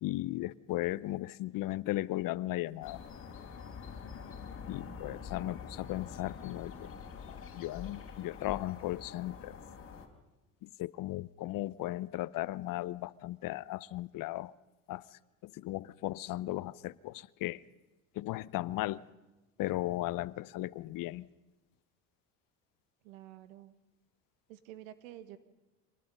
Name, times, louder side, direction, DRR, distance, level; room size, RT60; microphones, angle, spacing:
voice 1, 0.0-3.0 4.7-6.9 7.3-9.5 10.6-14.5 14.9-15.1 15.4-17.6 18.1-19.0 19.6-21.3, left 16 dB, 55° left, 20 dB, 0.8 m, -36 dB
sound 1, 2.8-10.1, left 6 dB, 35° left, 4.0 m, -46 dB
voice 2, 4.8-5.6 23.0-23.7 24.5-25.4, right 13 dB, 90° right, 13 dB, 1.6 m, -51 dB
25.5 x 19.0 x 5.5 m, 1.1 s
supercardioid pair, 85°, 39 cm